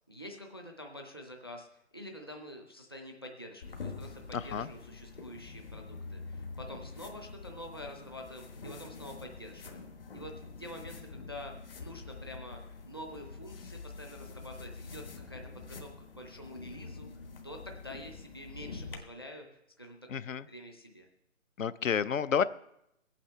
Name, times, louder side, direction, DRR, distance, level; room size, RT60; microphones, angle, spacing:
voice 1, 0.1-9.9 10.1-11.5 11.8-20.0 20.5-21.1, left 1 dB, 20° left, 2 dB, 0.6 m, -47 dB
sound 1, 3.6-19.0, left 4 dB, 45° left, 1.3 m, -46 dB
voice 2, 4.3-4.7 20.1-20.4 21.6-22.4, left 7 dB, 70° left, 16 dB, 0.6 m, -30 dB
22.5 x 8.7 x 3.3 m, 0.81 s
hypercardioid pair, 170°, 40 cm